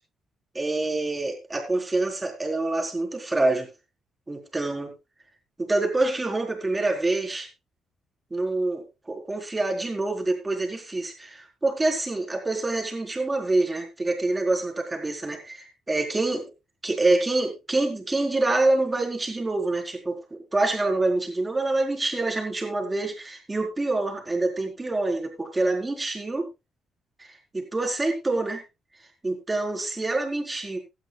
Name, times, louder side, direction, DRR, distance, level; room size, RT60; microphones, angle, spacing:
voice 1, 0.5-3.7 4.3-4.9 5.6-7.5 8.3-16.5 16.8-20.2 20.5-26.5 27.2-28.6 29.2-30.8, right 2 dB, 20° right, 2 dB, 4.4 m, -26 dB
17.0 x 12.0 x 2.4 m, 0.25 s
cardioid pair, 90°, 0 cm